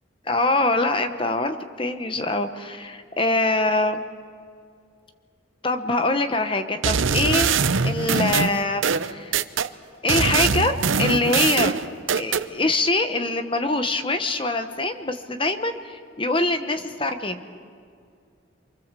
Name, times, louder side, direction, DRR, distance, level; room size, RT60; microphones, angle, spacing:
voice 1, 0.3-4.0 5.6-9.4 10.0-10.7 11.0-11.8 12.1-17.4, left 2 dB, 25° left, 8 dB, 1.1 m, -24 dB
sound 1, 6.8-9.7 10.1-12.5, right 5 dB, 80° right, 0.8 m, -22 dB
28.5 x 24.0 x 7.6 m, 2.2 s
head